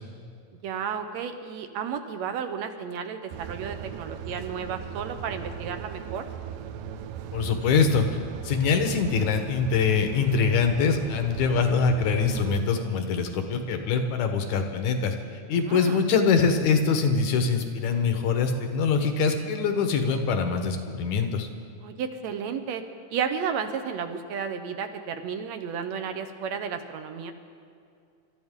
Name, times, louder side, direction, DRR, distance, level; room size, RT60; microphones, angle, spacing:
voice 1, 0.6-6.3 15.6-16.0 21.8-22.8 23.1-27.3, right 7 dB, 70° right, 8 dB, 1.9 m, -32 dB
sound 1, 3.3-12.6, right 8 dB, 90° right, 2.1 m, -38 dB
voice 2, 7.3-8.1 8.4-15.1 15.5-21.5, left 5 dB, 75° left, 5 dB, 2.4 m, -24 dB
25.0 x 13.0 x 3.7 m, 2.4 s
omnidirectional pair, 3.5 m